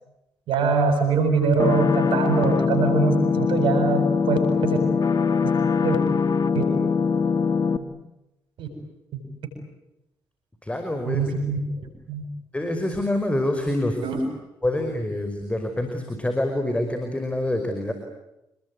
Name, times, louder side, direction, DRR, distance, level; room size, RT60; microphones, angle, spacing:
voice 1, 0.5-4.8 5.8-6.0 6.5-6.6 8.6-8.7 9.1-9.2 11.1-12.2 14.0-14.2, right 4 dB, 75° right, 6 dB, 7.8 m, -23 dB
sound 1, 1.6-7.8, left 5 dB, 50° left, 2.2 m, -22 dB
voice 2, 10.6-11.3 12.5-14.0 14.6-17.9, left 1 dB, 15° left, 6 dB, 5.2 m, -26 dB
28.0 x 21.5 x 9.7 m, 0.89 s
supercardioid pair, 55°, 8 cm